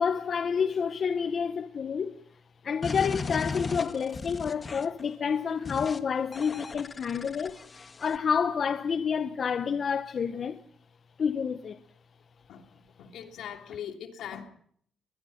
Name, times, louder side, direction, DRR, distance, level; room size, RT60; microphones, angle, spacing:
voice 1, 0.0-2.1 2.6-7.6 8.0-10.6 11.2-11.8, left 6 dB, 50° left, 0.9 m, -29 dB
sound 1, 2.8-5.0 5.7-6.0 6.3-8.2, left 4 dB, 35° left, 1.4 m, -36 dB
voice 2, 12.5-14.5, left 9 dB, 75° left, 3.0 m, -41 dB
21.5 x 21.5 x 5.8 m
cardioid pair, 90°, 0 cm